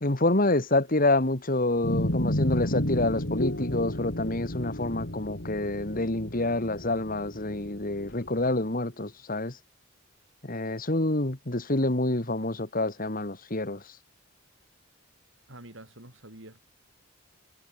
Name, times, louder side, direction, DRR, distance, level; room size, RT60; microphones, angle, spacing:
voice 1, 0.0-9.5 10.4-13.8, left 2 dB, 45° left, 2.2 m, -27 dB
sound 1, 1.8-8.4, left 1 dB, 60° left, 3.7 m, -32 dB
voice 2, 15.5-16.6, right 1 dB, 70° right, 6.5 m, -47 dB
head